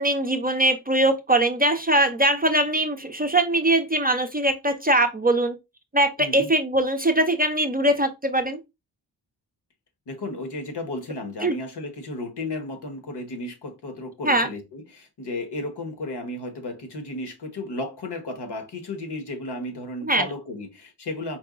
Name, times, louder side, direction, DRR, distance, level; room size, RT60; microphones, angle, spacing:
voice 1, 0.0-5.6 5.9-8.6 11.4-11.6 14.2-14.5 20.0-20.2, right 1 dB, 20° right, 0.5 m, -21 dB
voice 2, 6.2-6.5 10.1-21.4, left 2 dB, 70° left, 1.4 m, -34 dB
4.7 x 2.2 x 3.8 m
cardioid pair, 70°, 42 cm